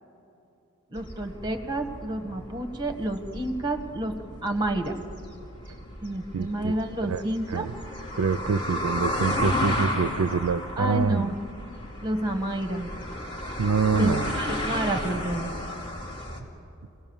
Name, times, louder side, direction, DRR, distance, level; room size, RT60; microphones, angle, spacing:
voice 1, 0.9-4.1 4.4-4.9 6.0-7.7 10.8-11.3 12.0-13.0 13.9-14.1 14.4-15.5, right 1 dB, 20° right, 7 dB, 1.6 m, -29 dB
sound 1, 1.0-16.4, left 1 dB, 25° left, 2.6 m, -33 dB
voice 2, 6.3-7.2 7.5-7.7 8.2-11.3 13.6-14.4, right 5 dB, 80° right, 15 dB, 0.4 m, -26 dB
28.0 x 18.5 x 7.2 m, 2.8 s
head